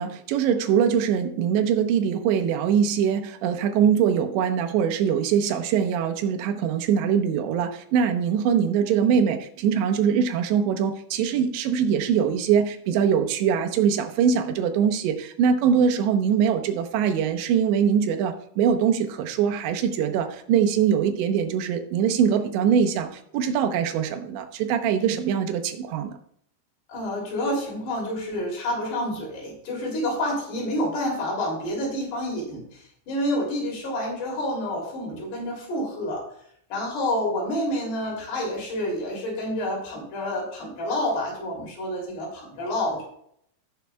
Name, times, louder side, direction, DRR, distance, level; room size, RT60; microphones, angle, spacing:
voice 1, 0.0-26.2, right 7 dB, 90° right, 5 dB, 3.2 m, -23 dB
voice 2, 26.9-36.2 36.7-43.0, left 1 dB, 70° left, -2 dB, 4.9 m, -28 dB
16.5 x 7.3 x 2.3 m, 0.67 s
omnidirectional pair, 5.1 m